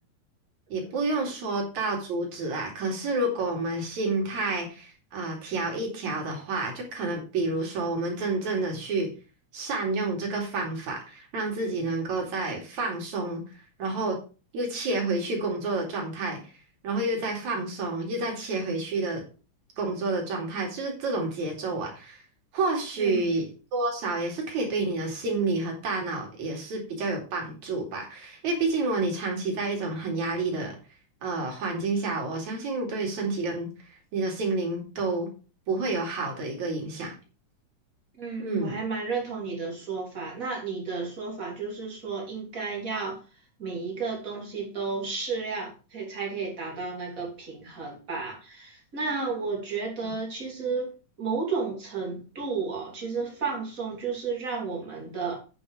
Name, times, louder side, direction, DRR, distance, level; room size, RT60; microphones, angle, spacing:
voice 1, 0.7-9.1 9.5-13.4 13.8-14.2 14.5-16.5 16.8-19.2 19.8-22.2 22.5-23.5 23.7-30.8 31.2-33.7 34.1-35.3 35.7-37.2 38.4-38.8 50.0-50.1, right 3 dB, 70° right, 3.8 m, -29 dB
voice 2, 23.0-23.3 38.2-43.2 43.6-50.9 51.2-55.3, right 4 dB, 25° right, 3.1 m, -32 dB
8.8 x 6.1 x 5.0 m
omnidirectional pair, 3.5 m